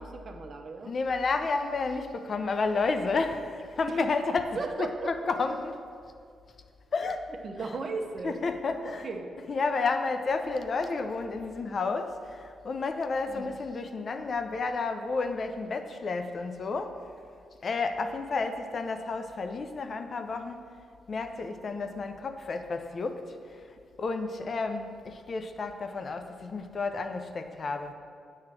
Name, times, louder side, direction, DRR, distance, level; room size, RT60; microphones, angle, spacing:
voice 1, 0.0-0.9 3.8-4.1 4.5-5.1 7.4-8.4 8.8-9.3 13.3-13.6 18.3-18.5, right 3 dB, 50° right, 4 dB, 0.7 m, -36 dB
voice 2, 0.8-5.7 6.9-7.3 7.6-7.7 8.2-9.1 9.5-17.0 17.6-20.6 21.1-23.4 24.0-27.9, left 4 dB, 50° left, 7 dB, 0.5 m, -31 dB
7.6 x 3.1 x 5.9 m, 2.3 s
cardioid pair, 65°, 0 cm